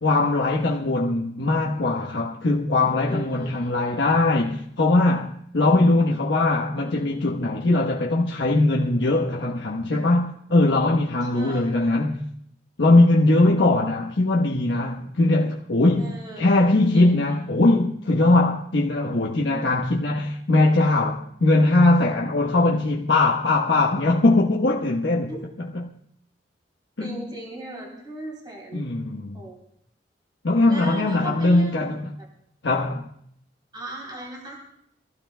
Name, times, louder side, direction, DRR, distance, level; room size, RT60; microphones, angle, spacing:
voice 1, 0.0-12.2 12.8-16.1 16.4-25.3 27.0-27.3 28.7-29.4 30.4-32.0 32.6-33.1, left 2 dB, 85° left, 1.1 m, -20 dB
voice 2, 3.0-4.1 11.3-12.0 16.0-16.5 16.9-17.2 25.3-25.4 27.0-28.8 29.3-29.6 30.7-31.8 32.2-32.3 33.7-34.6, right 1 dB, 25° right, 3.4 m, -37 dB
23.5 x 15.5 x 2.2 m
head